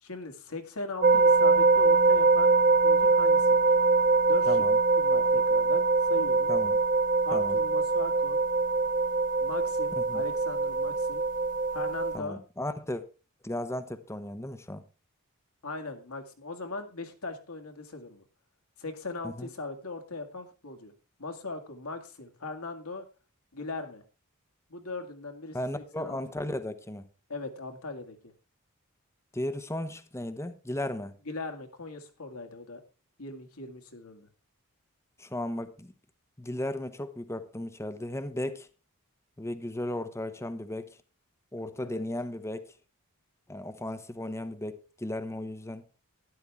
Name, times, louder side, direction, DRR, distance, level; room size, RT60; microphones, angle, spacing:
voice 1, 0.0-2.6 2.8-3.7 4.3-4.6 5.0-6.5 7.2-8.4 9.4-11.2 11.7-12.4 15.6-18.2 18.8-20.9 21.2-23.0 23.5-24.0 24.7-26.2 27.3-28.3 31.3-32.8 33.2-34.3 41.8-42.0, left 3 dB, 75° left, 2.1 m, -40 dB
sound 1, 1.0-12.2, right 3 dB, 35° right, 0.5 m, -23 dB
voice 2, 4.5-4.8 6.5-6.8 7.3-7.6 10.0-10.2 12.1-13.0 13.4-14.8 19.2-19.5 25.5-27.1 29.3-31.1 35.2-35.9 36.4-38.7 39.4-41.0 41.5-42.6 43.5-45.8, left 1 dB, 10° left, 0.9 m, -35 dB
12.5 x 11.5 x 3.5 m
head